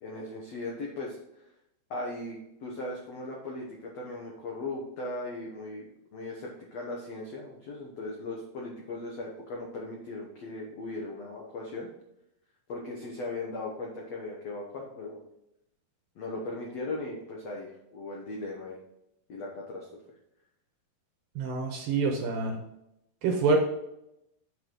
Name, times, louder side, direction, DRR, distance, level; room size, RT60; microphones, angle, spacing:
voice 1, 0.0-1.2 1.9-11.9 12.7-15.2 16.2-18.8 19.3-19.9, left 2 dB, 80° left, -2 dB, 1.4 m, -38 dB
voice 2, 21.4-22.6 23.2-23.6, right 4 dB, 70° right, 3 dB, 2.4 m, -26 dB
9.9 x 5.6 x 3.8 m, 0.83 s
omnidirectional pair, 5.0 m